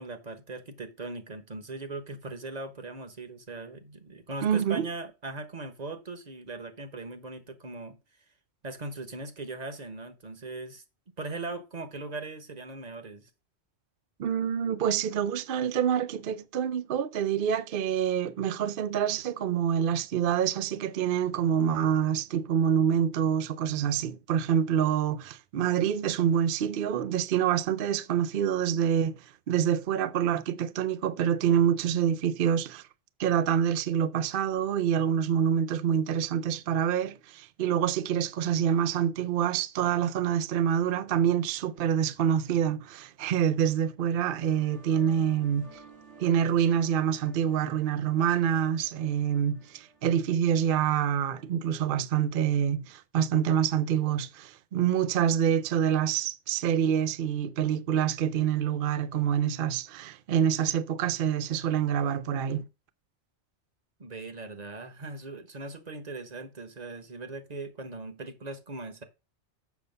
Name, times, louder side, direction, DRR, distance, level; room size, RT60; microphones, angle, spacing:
voice 1, 0.0-8.0 8.6-10.8 11.2-13.3 64.0-69.0, right 3 dB, 35° right, 1.2 m, -39 dB
voice 2, 4.4-4.9 14.2-32.8 33.2-45.8 46.2-62.6, right 9 dB, 60° right, 0.7 m, -26 dB
sound 1, 44.1-51.5, right 3 dB, 80° right, 2.1 m, -55 dB
7.2 x 6.6 x 5.3 m
omnidirectional pair, 1.2 m